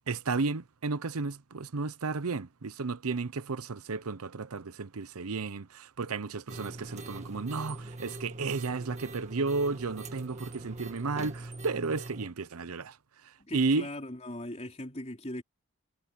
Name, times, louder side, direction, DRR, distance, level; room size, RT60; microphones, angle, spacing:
voice 1, 0.1-13.0 13.2-13.9, right 4 dB, 80° right, 0.8 m, -33 dB
sound 1, 6.5-12.3, right 2 dB, 30° right, 1.8 m, -42 dB
voice 2, 13.4-15.4, left 1 dB, 30° left, 3.9 m, -39 dB
head